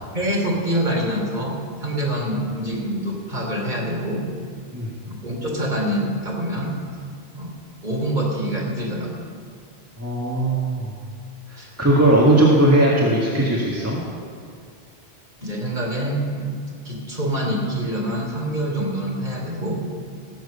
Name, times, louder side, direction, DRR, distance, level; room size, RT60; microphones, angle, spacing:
voice 1, 0.1-4.3 5.0-6.8 7.3-7.5 7.8-9.1 11.6-11.7 15.4-16.5 16.8-19.7, right 1 dB, 45° right, -2 dB, 3.3 m, -25 dB
voice 2, 10.0-10.9 11.5-14.0, right 1 dB, 15° right, -5 dB, 1.7 m, -18 dB
17.5 x 7.7 x 6.9 m, 2.2 s
omnidirectional pair, 1.1 m